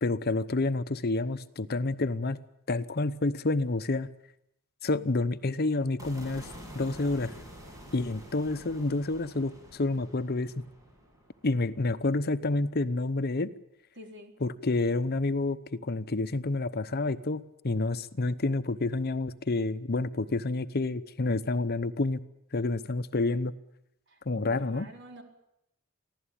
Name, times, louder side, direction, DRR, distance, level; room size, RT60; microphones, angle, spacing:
voice 1, 0.0-2.4 2.7-4.1 4.8-6.5 6.7-7.3 7.9-10.6 11.4-13.5 14.4-22.2 22.5-23.5 24.3-24.9, left 2 dB, 50° left, 13 dB, 0.8 m, -29 dB
sound 1, 6.0-12.2, equal, 15° right, 7.3 m, -48 dB
voice 2, 14.0-14.3 24.1-25.2, equal, 55° right, 3 dB, 4.4 m, -48 dB
24.5 x 16.0 x 8.8 m, 0.81 s
head